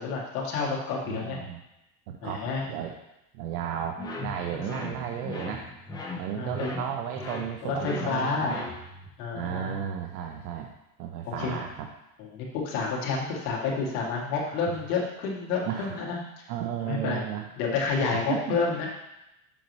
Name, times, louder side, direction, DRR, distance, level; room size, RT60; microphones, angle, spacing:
voice 1, 0.0-1.5 2.2-2.6 6.3-6.7 7.6-8.6 9.2-9.8 11.2-11.6 12.2-16.2 16.8-17.2 17.6-18.9, left 4 dB, 75° left, -3 dB, 1.9 m, -29 dB
voice 2, 1.0-1.6 2.1-2.9 3.3-5.7 6.2-8.7 9.3-10.7 11.0-11.9 14.5-14.8 15.6-16.0 16.5-17.5 18.1-18.6, right 9 dB, 80° right, 3 dB, 0.7 m, -34 dB
sound 1, 4.0-9.1, left 3 dB, 10° left, 0.5 m, -38 dB
7.0 x 3.1 x 5.3 m, 0.91 s
supercardioid pair, 155°, 45 cm